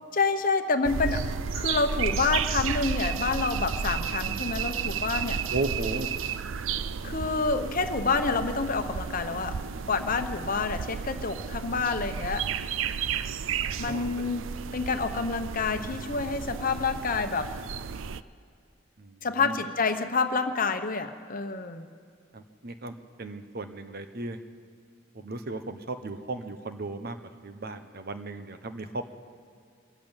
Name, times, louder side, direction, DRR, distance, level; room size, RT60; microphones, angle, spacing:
voice 1, 0.1-1.2 1.5-5.4 7.0-9.6 9.9-12.4 13.8-14.5 14.7-17.5 19.2-21.9, left 4 dB, 45° left, 8 dB, 1.0 m, -28 dB
sound 1, 0.8-18.2, right 6 dB, 85° right, 0.5 m, -32 dB
voice 2, 5.5-6.1 13.9-14.0 19.0-19.6 22.3-24.4 25.1-27.2 27.4-29.2, right 2 dB, 50° right, 9 dB, 1.0 m, -35 dB
21.5 x 13.5 x 9.0 m, 2.2 s
head